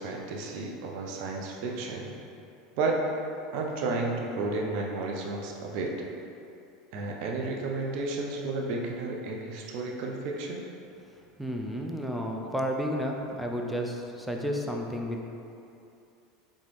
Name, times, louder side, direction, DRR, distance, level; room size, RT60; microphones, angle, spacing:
voice 1, 0.0-2.1 2.8-3.0 3.5-5.9 6.9-10.6, right 3 dB, 60° right, 0 dB, 0.6 m, -32 dB
voice 2, 11.4-15.2, equal, ahead, 0 dB, 0.5 m, -32 dB
4.0 x 3.5 x 3.3 m, 2.7 s
hypercardioid pair, 90°, 0 cm